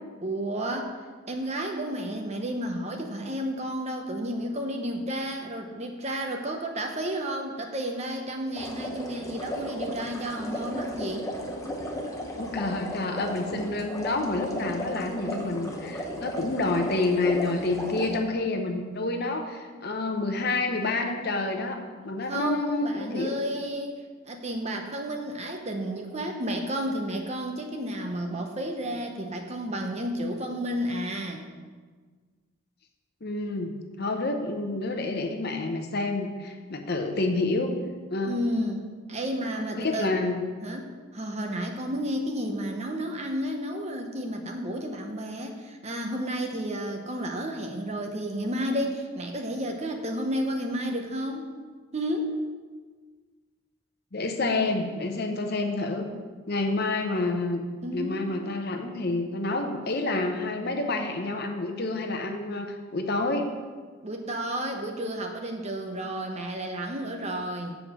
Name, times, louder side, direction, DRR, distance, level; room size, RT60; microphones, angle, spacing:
voice 1, 0.2-11.3 22.3-31.5 38.2-40.1 40.6-51.5 51.9-52.3 57.8-58.3 64.0-67.8, equal, 30° right, 3 dB, 0.8 m, -32 dB
sound 1, 8.5-18.2, equal, 15° left, 0.8 m, -35 dB
voice 2, 12.4-21.8 22.0-23.4 33.2-37.7 38.1-38.4 39.8-40.4 54.1-56.1 56.5-57.6 57.9-63.5, left 2 dB, 50° left, 4 dB, 0.8 m, -28 dB
7.1 x 5.0 x 7.2 m, 1.5 s
head